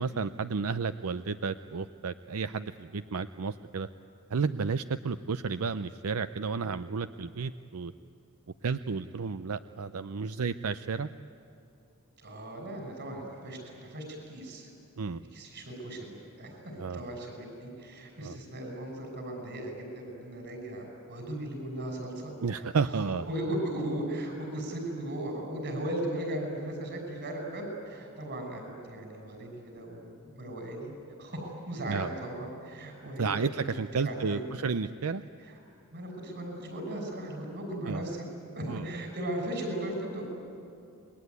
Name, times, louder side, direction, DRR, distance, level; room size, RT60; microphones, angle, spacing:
voice 1, 0.0-3.9 4.3-7.9 8.6-11.1 15.0-15.2 16.8-17.1 18.2-18.4 22.4-23.2 31.9-32.1 33.2-35.2 37.9-38.1 38.7-38.9, right 5 dB, 85° right, 11 dB, 0.6 m, -32 dB
voice 2, 12.2-14.7 15.3-23.0 23.3-30.9 31.2-33.5 34.0-34.6 35.4-35.6 35.9-38.3 38.5-40.2, right 1 dB, 55° right, 2 dB, 6.2 m, -37 dB
27.0 x 21.5 x 9.6 m, 2.7 s
head